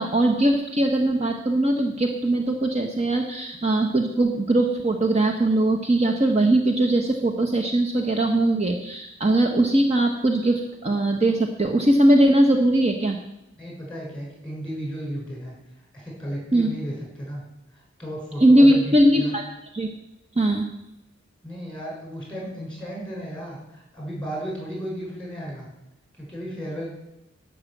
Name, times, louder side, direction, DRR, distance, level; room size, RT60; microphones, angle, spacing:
voice 1, 0.0-13.2 16.5-16.7 18.4-19.4 19.7-19.9 20.4-20.7, right 1 dB, 35° right, 3 dB, 0.9 m, -20 dB
voice 2, 13.5-15.5 15.9-17.4 17.7-19.3 21.4-25.7 26.1-26.9, equal, 5° left, -3 dB, 6.0 m, -34 dB
12.5 x 6.3 x 8.4 m, 0.89 s
head